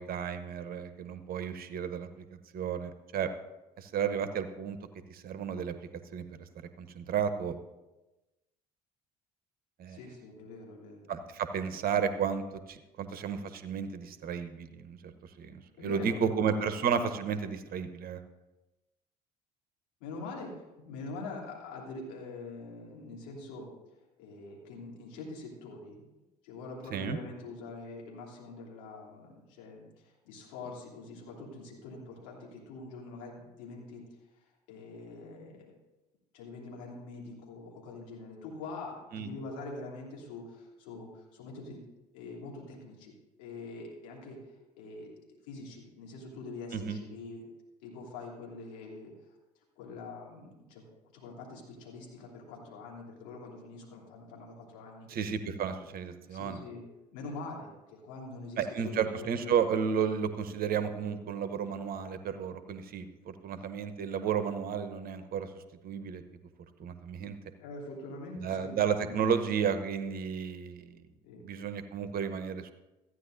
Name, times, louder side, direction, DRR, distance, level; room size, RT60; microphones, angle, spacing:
voice 1, 0.0-3.3 3.8-4.8 5.1-5.8 6.1-6.5 6.8-7.6 9.8-10.0 11.1-18.2 26.9-27.2 39.1-39.3 46.7-47.0 55.1-56.6 58.6-66.2 66.8-67.4 68.4-71.0 71.4-72.7, right 7 dB, 45° right, 10 dB, 0.9 m, -33 dB
voice 2, 9.9-11.0 15.8-16.4 20.0-23.7 24.2-26.1 26.4-34.0 34.7-35.7 36.3-41.8 42.1-44.4 44.8-45.1 45.4-47.4 47.8-49.1 49.8-50.8 51.1-55.1 56.3-56.8 57.1-59.6 67.6-69.3 71.2-71.4, left 3 dB, 70° left, -2 dB, 2.9 m, -44 dB
15.0 x 9.5 x 2.6 m, 1.1 s
hypercardioid pair, 60°, 20 cm